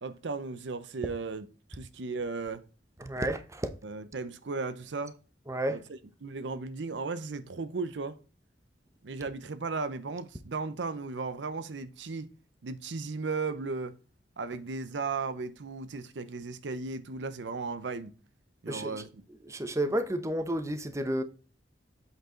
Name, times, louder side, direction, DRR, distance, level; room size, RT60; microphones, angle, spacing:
voice 1, 0.0-2.6 3.8-5.2 5.7-8.2 9.0-12.3 12.6-14.0 14.4-18.1 18.6-19.1, right 4 dB, 75° right, 0.7 m, -36 dB
voice 2, 3.0-3.7 5.5-5.8 18.7-19.0 19.5-21.2, right 1 dB, 15° right, 0.8 m, -31 dB
8.1 x 4.6 x 3.8 m
head